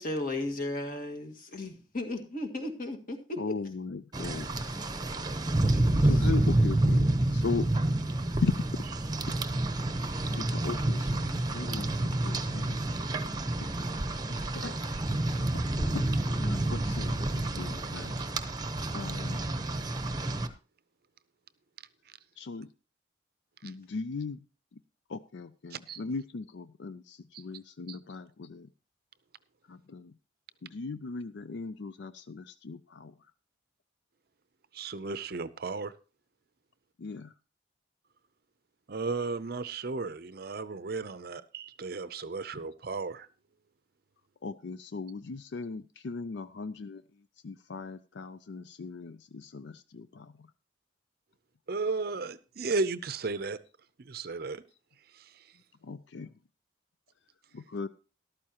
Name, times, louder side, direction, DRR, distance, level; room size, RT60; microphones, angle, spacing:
voice 1, 0.0-3.5 6.0-6.2, left 2 dB, 45° left, 4 dB, 1.8 m, -35 dB
voice 2, 3.4-4.7 6.0-7.6 8.4-8.6 10.4-12.8 13.6-13.7 14.3-14.8 15.3-16.1 16.4-18.1 18.9-19.4 22.4-22.7 23.6-24.4 24.7-24.8 25.1-28.7 29.7-30.1 30.6-33.1 37.0-37.3 44.4-47.0 47.4-50.5 55.8-56.3 57.5-57.9, left 4 dB, 65° left, 13 dB, 0.4 m, -38 dB
Rain, 4.1-20.5, right 1 dB, 20° right, 0.8 m, -29 dB
voice 3, 34.7-35.9 38.9-43.3 51.7-53.6 54.0-54.6 55.1-55.4, right 3 dB, 50° right, 15 dB, 0.6 m, -34 dB
13.5 x 12.5 x 2.9 m, 0.33 s
head